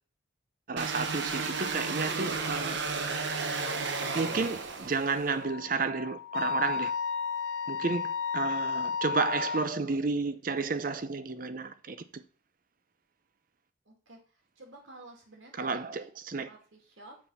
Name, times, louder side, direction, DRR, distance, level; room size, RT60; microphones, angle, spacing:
voice 1, 0.7-2.8 4.1-6.9 7.7-12.2 15.6-16.5, right 4 dB, 45° right, 0.6 m, -32 dB
sound 1, 0.8-5.3, right 4 dB, 65° right, 1.0 m, -33 dB
Wind instrument woodwind instrument, 5.4-9.7, left 6 dB, 60° left, 0.5 m, -33 dB
voice 2, 13.8-16.1 16.4-17.2, right 2 dB, 80° right, 2.3 m, -52 dB
8.1 x 4.3 x 5.6 m
head